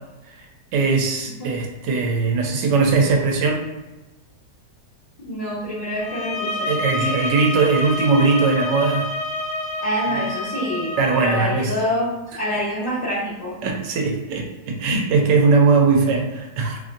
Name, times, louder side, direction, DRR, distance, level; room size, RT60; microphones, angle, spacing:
voice 1, 0.7-3.6 6.6-9.1 11.0-11.7 13.6-16.8, right 4 dB, 85° right, 2 dB, 1.3 m, -19 dB
voice 2, 5.2-7.1 9.8-13.6, equal, 40° left, -10 dB, 0.5 m, -26 dB
sound 1, 6.0-11.4, left 1 dB, 70° left, 1.0 m, -28 dB
3.1 x 2.6 x 2.5 m, 1.1 s
omnidirectional pair, 1.9 m